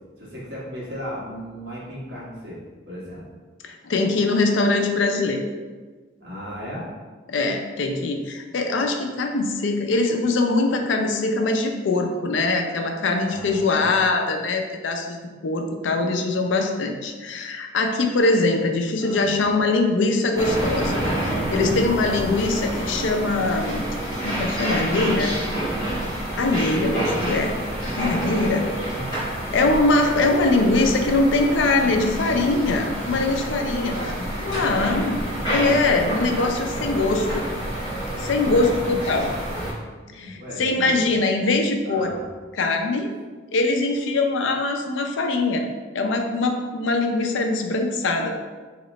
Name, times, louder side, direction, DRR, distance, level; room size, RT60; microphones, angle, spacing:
voice 1, 0.2-2.6 2.9-3.2 6.2-6.9 13.2-14.0 19.0-19.3 21.5-21.8 33.8-35.3 38.4-39.0 40.0-41.1 41.8-42.2, equal, 65° right, -6 dB, 1.2 m, -35 dB
voice 2, 3.6-5.4 7.3-15.2 15.4-23.9 24.2-25.3 26.3-27.5 27.9-28.7 29.5-34.0 34.5-35.2 35.5-37.5 38.2-39.3 40.1-42.1 42.6-43.1 43.5-45.6 45.9-48.3, left 2 dB, 85° left, 4 dB, 0.5 m, -22 dB
sound 1, 20.4-39.7, right 1 dB, 20° left, 1.3 m, -28 dB
3.1 x 2.9 x 4.0 m, 1.4 s
head